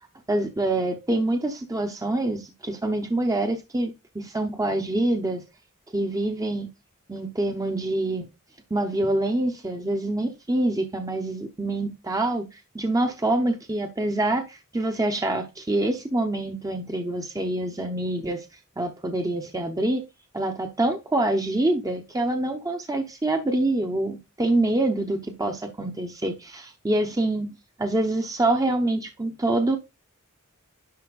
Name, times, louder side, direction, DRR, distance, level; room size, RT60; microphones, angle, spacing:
voice 1, 0.3-5.4 5.9-6.7 7.1-8.3 8.7-18.5 18.8-20.0 20.3-27.5 27.8-29.8, right 2 dB, 15° right, 0.8 m, -26 dB
10.5 x 4.4 x 2.4 m
head